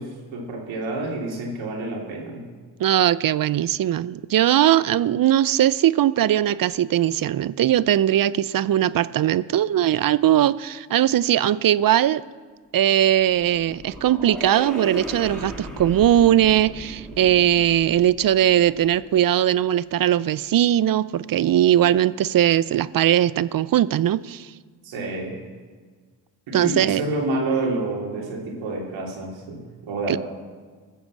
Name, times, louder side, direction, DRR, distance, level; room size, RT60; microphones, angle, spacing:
voice 1, 0.0-2.4 24.8-25.4 26.5-30.2, right 2 dB, 85° right, -2 dB, 3.1 m, -28 dB
voice 2, 2.8-12.2 12.7-24.5 26.5-27.0 30.1-30.2, right 11 dB, 50° right, 18 dB, 0.5 m, -20 dB
sound 1, 12.8-19.3, equal, ahead, 2.8 m, -37 dB
14.5 x 7.2 x 7.4 m, 1.5 s
supercardioid pair, 50°, 45 cm